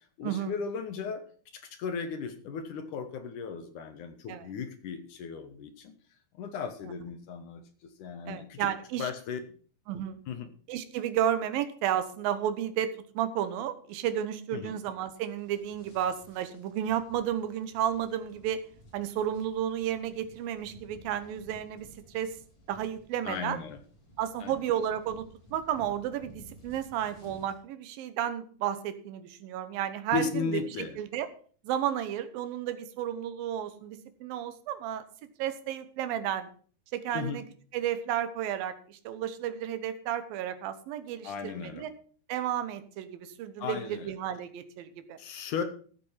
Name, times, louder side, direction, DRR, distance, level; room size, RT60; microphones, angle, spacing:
voice 1, 0.2-1.2 1.5-5.9 6.3-8.7 9.0-9.4 10.3-10.5 14.5-14.7 23.2-23.8 24.4-24.5 30.1-31.0 37.1-37.4 41.2-41.9 43.6-44.1 45.2-45.6, left 6 dB, 65° left, 8 dB, 2.4 m, -36 dB
voice 2, 8.3-9.1 9.9-10.2 10.7-12.9 13.1-18.6 18.9-22.4 22.7-23.6 24.2-25.3 25.5-30.5 30.8-31.3 31.6-35.0 35.4-36.5 36.9-37.4 37.7-41.9 42.3-45.2, right 10 dB, 75° right, 11 dB, 2.8 m, -32 dB
sound 1, 15.3-27.6, equal, 30° left, 4.4 m, -55 dB
14.0 x 7.6 x 5.7 m, 0.43 s
omnidirectional pair, 4.3 m